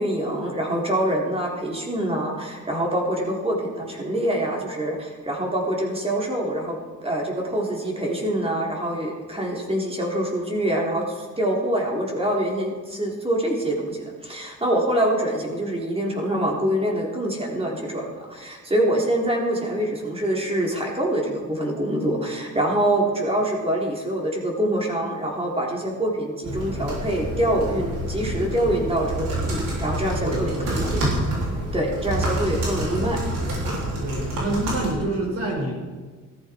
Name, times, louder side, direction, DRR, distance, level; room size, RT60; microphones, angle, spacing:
voice 1, 0.0-18.0 18.3-31.1 31.7-33.2, right 1 dB, 20° right, -1 dB, 3.5 m, -25 dB
sound 1, 26.4-34.9, right 1 dB, 90° right, 5.7 m, -27 dB
voice 2, 30.2-30.9 34.0-35.7, right 2 dB, 50° right, -2 dB, 5.7 m, -27 dB
15.0 x 13.5 x 4.6 m, 1.4 s
cardioid pair, 105°, 32 cm